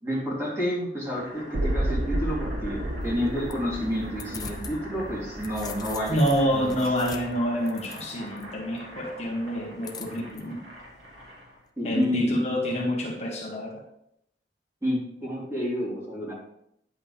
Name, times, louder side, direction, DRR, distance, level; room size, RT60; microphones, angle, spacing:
voice 1, 0.0-6.2 6.5-6.8 11.8-12.4 14.8-16.3, equal, 15° right, -6 dB, 3.4 m, -29 dB
Boiling, 1.0-11.6, equal, 85° right, 3.3 m, -45 dB
sound 1, 1.5-7.5 7.8-7.9, right 1 dB, 60° right, 1.2 m, -32 dB
sound 2, 3.0-4.8 5.1-8.4 9.8-10.4, left 6 dB, 20° left, 0.7 m, -43 dB
voice 2, 6.1-10.6 11.8-13.8, equal, 35° left, -2 dB, 1.4 m, -27 dB
10.0 x 8.1 x 3.5 m, 0.76 s
head